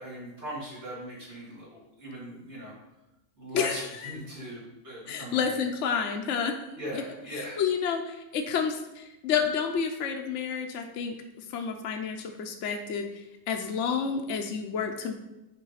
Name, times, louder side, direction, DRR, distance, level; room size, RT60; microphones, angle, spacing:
voice 1, 0.0-2.7 3.4-5.6 6.8-7.6, equal, 50° right, -7 dB, 3.6 m, -39 dB
voice 2, 3.5-4.1 5.1-6.5 7.3-11.1 11.5-13.0 13.5-15.1, left 6 dB, 65° left, 3 dB, 1.0 m, -30 dB
8.3 x 4.7 x 5.7 m, 0.95 s
omnidirectional pair, 1.5 m